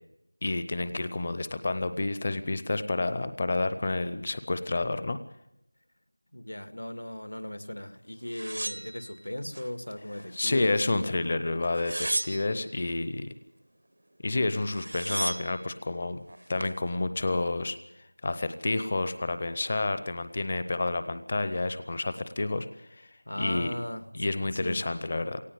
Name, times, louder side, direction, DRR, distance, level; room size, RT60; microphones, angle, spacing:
voice 1, 0.4-5.2 10.3-13.3 14.2-16.2 16.5-17.8 18.2-23.1 23.4-23.7 24.1-25.4, left 2 dB, 25° left, 12 dB, 0.7 m, -29 dB
voice 2, 6.3-10.9 23.3-24.1 24.6-24.8, left 1 dB, 75° left, 11 dB, 1.9 m, -37 dB
sound 1, 8.3-9.7 10.1-10.9 11.6-12.7 14.3-14.4 14.6-15.6 16.3-16.8, right 1 dB, 60° right, 0.7 m, -35 dB
18.0 x 16.0 x 9.4 m, 0.82 s
figure-of-eight pair, 175°, 0 cm